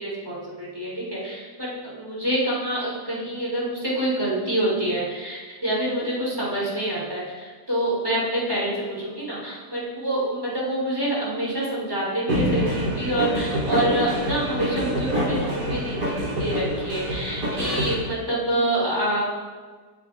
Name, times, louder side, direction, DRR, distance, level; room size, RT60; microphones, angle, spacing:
voice 1, 0.0-16.1 16.4-19.2, right 1 dB, 10° right, -7 dB, 6.5 m, -26 dB
sound 1, 12.3-17.9, equal, 75° right, 4.5 m, -26 dB
24.5 x 12.5 x 4.0 m, 1.5 s
omnidirectional pair, 1.8 m